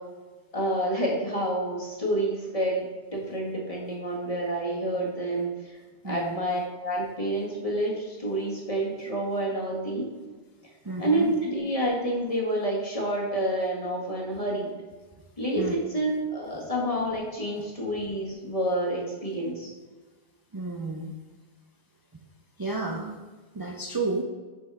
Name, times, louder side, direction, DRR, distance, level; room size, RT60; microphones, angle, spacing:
voice 1, 0.5-2.8 3.1-5.7 6.0-10.1 11.0-14.7 15.4-19.7, right 1 dB, 30° left, -3 dB, 1.9 m, -28 dB
voice 2, 6.0-6.4 10.8-11.3 15.5-15.8 20.5-21.1 22.6-23.2 23.5-24.2, right 3 dB, 25° right, 1 dB, 0.5 m, -31 dB
6.6 x 5.2 x 4.8 m, 1.4 s
omnidirectional pair, 1.2 m